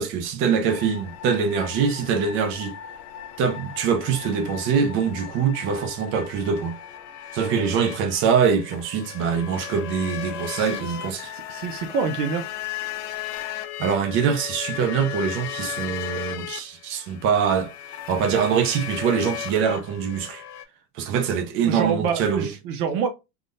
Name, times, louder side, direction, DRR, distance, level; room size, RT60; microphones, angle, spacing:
voice 1, 0.0-2.7 3.4-6.7 7.3-11.3 13.8-17.7 18.1-20.4 20.9-22.5, right 6 dB, 30° right, 0.4 m, -23 dB
sound 1, 0.7-20.6, left 11 dB, 65° left, 0.7 m, -36 dB
voice 2, 11.3-12.5 21.7-23.1, right 6 dB, 65° right, 0.7 m, -26 dB
3.6 x 2.1 x 2.5 m
supercardioid pair, 145°, 48 cm